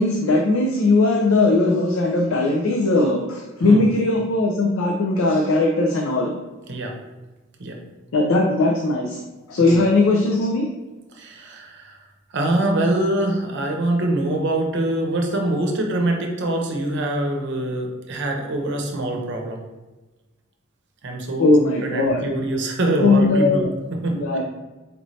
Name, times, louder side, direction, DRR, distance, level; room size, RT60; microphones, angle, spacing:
voice 1, 0.0-6.3 8.1-9.2 9.5-10.7 21.4-22.2 23.0-23.7 24.1-24.4, left 2 dB, 85° left, 1 dB, 0.5 m, -19 dB
voice 2, 11.1-12.0 12.3-19.6 21.0-21.5 21.8-24.2, right 1 dB, 60° right, 2 dB, 0.7 m, -24 dB
4.3 x 2.7 x 3.1 m, 1.2 s
head